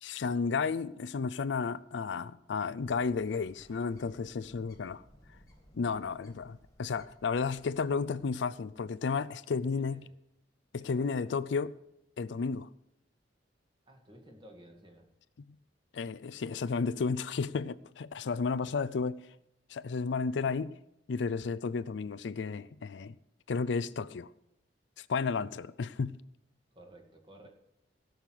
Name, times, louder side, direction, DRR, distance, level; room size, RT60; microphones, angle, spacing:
voice 1, 0.0-5.0 5.7-10.0 10.7-11.8 12.2-12.7 15.9-19.2 19.7-20.8 21.1-23.1 23.5-24.3 25.0-26.1, left 5 dB, 75° left, 0.4 m, -32 dB
Bird, 2.9-8.8, equal, 20° left, 2.1 m, -60 dB
voice 2, 9.6-10.0 10.9-11.3 13.9-15.1 26.7-27.5, right 1 dB, 30° right, 2.3 m, -54 dB
16.5 x 6.5 x 7.6 m
head